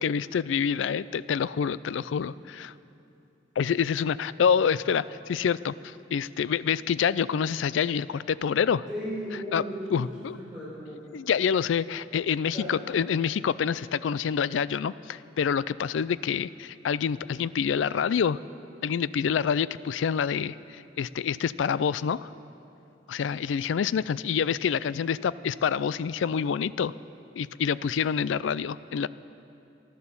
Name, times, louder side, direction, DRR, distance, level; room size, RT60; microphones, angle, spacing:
voice 1, 0.0-2.7 3.6-5.7 6.1-8.9 9.5-9.6 9.9-10.4 11.1-18.4 18.8-22.3 23.1-26.9 27.4-29.1, left 7 dB, 85° left, 18 dB, 0.4 m, -27 dB
voice 2, 8.9-10.0 10.3-11.0 12.5-12.7, equal, 5° right, -7 dB, 4.7 m, -35 dB
15.0 x 12.0 x 7.2 m, 2.7 s
head